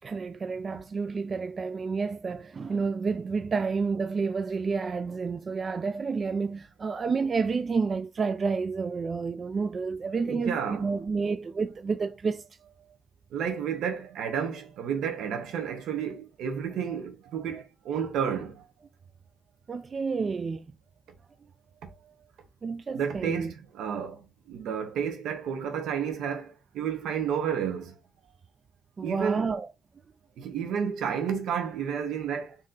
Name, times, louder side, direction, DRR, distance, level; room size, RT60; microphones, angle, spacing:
voice 1, 0.0-12.4 16.9-17.0 17.5-17.6 19.7-20.7 22.6-23.5 29.0-29.7 30.4-30.5, right 4 dB, 35° right, 0.3 m, -30 dB
voice 2, 10.2-10.9 13.3-18.7 21.8-22.1 22.9-28.0 29.0-29.5 30.4-32.6, right 7 dB, 75° right, 1.2 m, -31 dB
4.2 x 3.1 x 3.9 m
cardioid pair, 125°, 0 cm